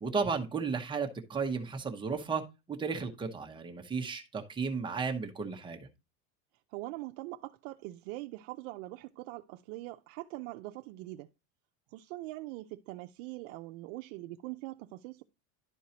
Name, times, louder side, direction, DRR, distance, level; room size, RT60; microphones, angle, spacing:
voice 1, 0.0-2.4 2.7-5.9, right 5 dB, 10° right, 0.8 m, -34 dB
voice 2, 6.7-11.3 11.9-15.2, right 18 dB, 65° right, 0.6 m, -42 dB
11.5 x 4.6 x 2.8 m
cardioid pair, 160°, 41 cm